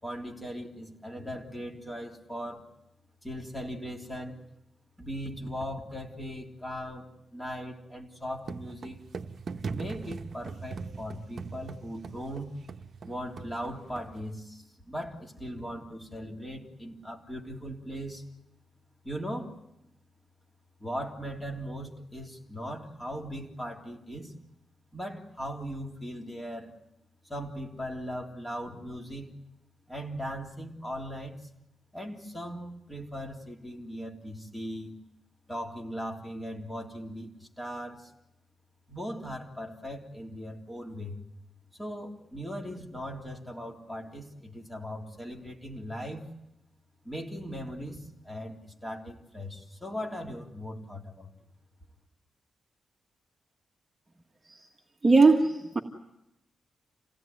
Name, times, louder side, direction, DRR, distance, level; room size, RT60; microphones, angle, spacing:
voice 1, 0.0-2.7 3.2-4.4 5.0-9.0 9.7-12.5 13.0-18.2 19.0-19.5 20.8-24.3 24.9-26.7 27.3-29.3 29.9-31.3 31.9-34.9 35.5-38.1 38.9-41.2 41.8-46.3 47.0-51.3, equal, 5° left, 0 dB, 3.4 m, -39 dB
sound 1, 8.4-14.2, right 5 dB, 55° right, 0.9 m, -40 dB
voice 2, 55.0-55.8, right 3 dB, 20° right, 1 dB, 1.8 m, -20 dB
28.0 x 17.5 x 9.5 m, 0.87 s
wide cardioid pair, 130°, 0 cm